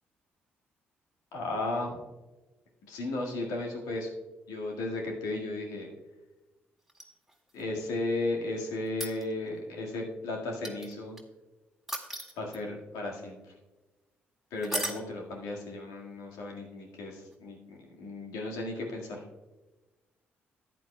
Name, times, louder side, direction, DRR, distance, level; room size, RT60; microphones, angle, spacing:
voice 1, 1.3-2.0 2.9-4.1 4.5-5.9 7.5-11.2 12.4-13.5 14.5-19.2, left 2 dB, 75° left, -1 dB, 1.8 m, -35 dB
sound 1, 6.9-7.6 8.9-9.6 10.6-11.2 11.9-12.8 14.6-15.1 17.3-17.4, right 1 dB, ahead, 2.0 m, -36 dB
14.0 x 9.2 x 2.3 m, 1.1 s
hypercardioid pair, 45°, 6 cm